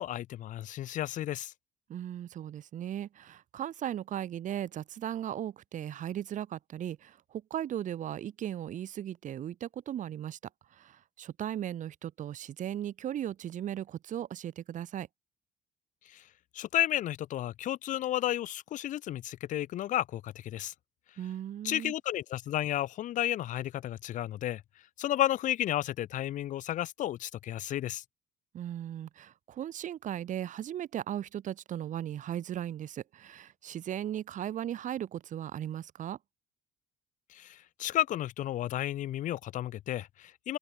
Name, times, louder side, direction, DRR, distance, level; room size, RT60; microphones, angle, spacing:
voice 1, 0.0-1.5 16.1-16.2 16.5-20.7 21.6-24.6 25.0-28.0 37.3-40.6, left 13 dB, 50° left, 0.4 m, -32 dB
voice 2, 1.9-10.4 10.7-15.1 21.2-21.9 28.5-36.2, right 11 dB, 50° right, 0.7 m, -37 dB
open air
cardioid pair, 110°, 17 cm